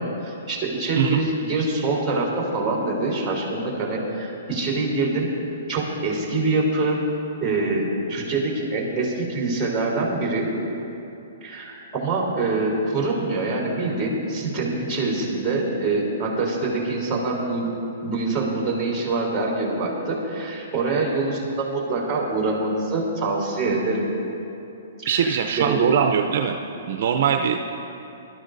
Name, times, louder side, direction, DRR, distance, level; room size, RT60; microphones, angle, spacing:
voice 1, 0.0-5.3 5.7-7.0 7.4-10.5 11.4-17.6 18.0-24.1 25.0-25.8, right 3 dB, 10° right, -3 dB, 3.4 m, -25 dB
voice 2, 25.1-26.5 26.9-27.6, right 8 dB, 55° right, 4 dB, 0.6 m, -21 dB
22.0 x 12.5 x 2.6 m, 2.9 s
hypercardioid pair, 155°, 0 cm